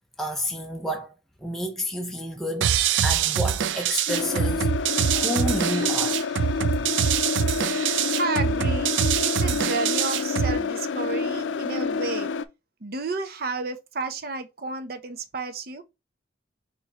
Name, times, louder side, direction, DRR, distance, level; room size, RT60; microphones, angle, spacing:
voice 1, 0.2-1.1 1.4-4.7 5.1-6.2, equal, ahead, 0.6 m, -30 dB
sound 1, 2.6-10.6, right 8 dB, 85° right, 0.4 m, -24 dB
sound 2, 4.1-12.4, left 5 dB, 85° left, 0.4 m, -28 dB
voice 2, 8.1-12.3 12.8-15.8, right 3 dB, 55° right, 0.7 m, -32 dB
4.7 x 2.7 x 4.1 m
head